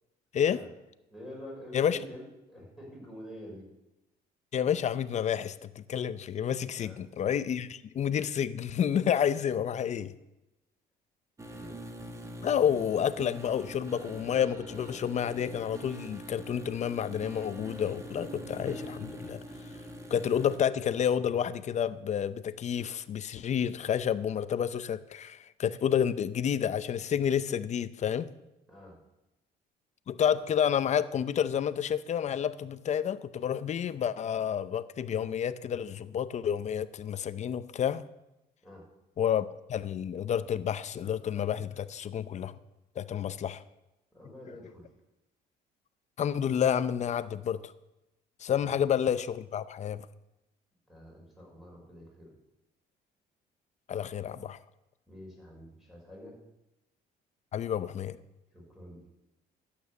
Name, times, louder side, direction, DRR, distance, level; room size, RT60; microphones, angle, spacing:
voice 1, 1.1-3.7 6.8-7.0 11.5-11.7 28.7-29.0 38.6-38.8 44.1-44.9 48.4-48.7 50.9-52.3 55.1-56.3 58.5-59.1, left 1 dB, ahead, -2 dB, 5.7 m, -47 dB
voice 2, 4.5-10.1 12.4-19.4 20.1-28.3 30.1-38.0 39.2-42.5 43.0-43.6 46.2-47.7 48.4-50.1 53.9-54.6 57.5-58.2, left 8 dB, 45° left, 14 dB, 0.6 m, -30 dB
sound 1, 11.4-20.6, right 1 dB, 15° right, 1.5 m, -44 dB
12.0 x 8.5 x 7.0 m, 0.93 s
cardioid pair, 110°, 17 cm